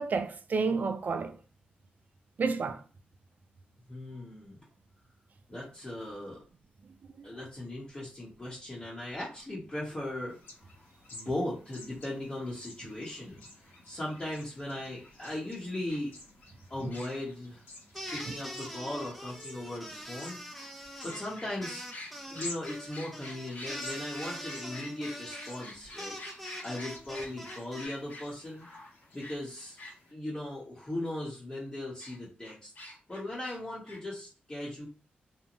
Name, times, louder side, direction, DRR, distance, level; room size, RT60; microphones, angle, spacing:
voice 1, 0.0-1.4 2.4-2.8 7.0-7.3 16.8-16.9 18.3-18.4, right 4 dB, 55° right, 0.4 m, -31 dB
voice 2, 3.9-4.6 5.5-6.4 7.2-10.4 11.1-13.4 13.8-16.1 16.7-17.6 18.1-20.7 21.0-21.8 22.3-26.2 26.6-28.7 29.1-29.8 30.1-32.7 33.1-34.9, left 1 dB, 25° left, 1.0 m, -38 dB
sound 1, 10.3-30.1, left 2 dB, 90° left, 1.2 m, -52 dB
sound 2, 15.9-16.0 16.9-17.3 18.1-18.3 20.6-20.7 21.1-29.9 32.0-32.2 32.4-33.6 33.9-34.0, left 2 dB, 60° left, 1.0 m, -46 dB
sound 3, 17.9-27.9, equal, ahead, 0.7 m, -43 dB
2.9 x 2.2 x 2.6 m
cardioid pair, 75°, 4 cm